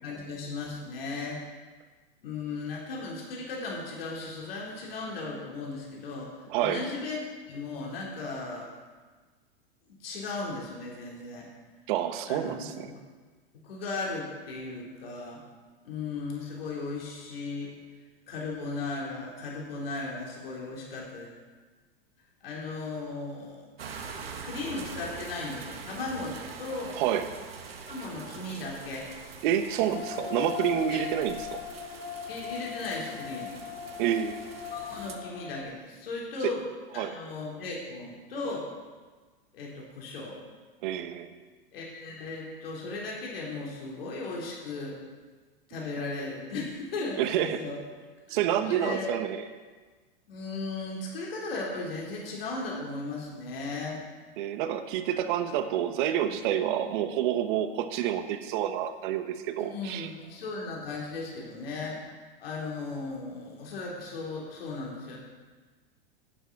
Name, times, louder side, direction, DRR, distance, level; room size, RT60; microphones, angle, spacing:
voice 1, 0.0-1.4 2.2-7.2 7.5-8.7 10.0-11.5 12.3-13.0 13.6-15.4 15.8-17.7 18.3-21.3 22.4-23.7 24.4-26.9 27.9-29.1 30.9-31.0 32.3-33.6 34.7-36.6 36.9-38.7 39.5-40.4 41.7-45.0 45.7-47.8 48.3-49.3 50.3-54.0 59.6-62.0 62.4-65.2, left 3 dB, 75° left, -3 dB, 3.4 m, -36 dB
voice 2, 6.5-6.8 11.9-12.9 27.0-27.3 29.4-31.6 34.0-34.4 37.0-37.2 40.8-41.3 45.7-45.8 47.2-47.6 48.3-49.4 54.4-60.1, right 10 dB, 55° right, 9 dB, 1.2 m, -28 dB
sound 1, 23.8-35.2, right 5 dB, 85° right, 1.6 m, -44 dB
sound 2, 29.9-35.6, left 10 dB, 35° left, 1.7 m, -39 dB
11.0 x 8.2 x 6.0 m, 1.4 s
hypercardioid pair, 115°, 29 cm